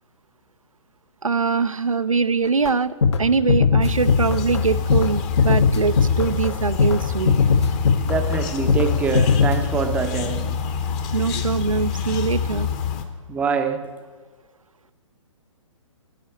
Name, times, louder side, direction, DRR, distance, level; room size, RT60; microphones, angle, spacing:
voice 1, 1.2-2.9 3.2-7.4 11.1-12.7, right 5 dB, 85° right, 0.5 m, -23 dB
sound 1, 2.7-2.8 3.0-3.2 3.5-4.6 4.9-5.1 5.4-6.5 6.8-7.0 7.3-8.4 8.7-8.9 9.1-9.8, left 5 dB, 55° left, 1.0 m, -18 dB
sound 2, 3.8-13.0, left 6 dB, 25° left, 0.9 m, -26 dB
voice 2, 8.1-10.7 13.3-14.0, right 5 dB, 10° right, 0.6 m, -25 dB
10.5 x 8.8 x 7.6 m
figure-of-eight pair, 125°, 17 cm